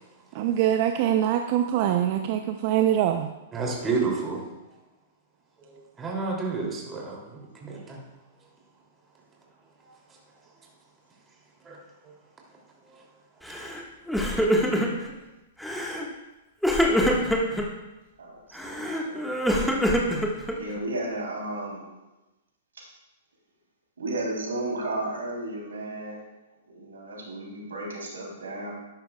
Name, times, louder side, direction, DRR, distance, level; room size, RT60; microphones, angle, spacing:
voice 1, 0.3-3.3, right 11 dB, 50° right, 6 dB, 0.7 m, -24 dB
voice 2, 3.5-4.4 5.7-8.0 11.6-11.8 13.6-13.7, right 4 dB, 20° right, -2 dB, 3.1 m, -30 dB
Crying sobbing, 13.5-13.8 14.1-15.1 15.6-16.1 16.6-17.7 18.5-20.8, equal, ahead, 1.7 m, -25 dB
voice 3, 18.2-19.5 20.5-21.8 24.0-26.2 26.7-28.7, right 1 dB, 80° right, -2 dB, 3.7 m, -34 dB
12.5 x 11.0 x 2.4 m, 1.0 s
hypercardioid pair, 115°, 0 cm